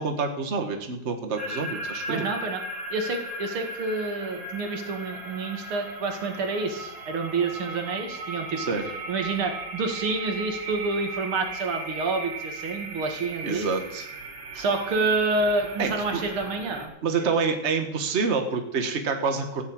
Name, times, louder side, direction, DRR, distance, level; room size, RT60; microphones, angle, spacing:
voice 1, 0.0-2.3 8.6-8.8 13.4-14.1 15.8-16.2 17.0-19.6, right 5 dB, 35° right, 5 dB, 1.7 m, -27 dB
sound 1, 1.4-16.9, right 2 dB, 60° right, 2.6 m, -37 dB
voice 2, 2.1-2.6 2.9-13.7 14.5-16.9, right 3 dB, 90° right, 4 dB, 2.9 m, -28 dB
14.5 x 7.3 x 8.9 m, 0.81 s
omnidirectional pair, 2.3 m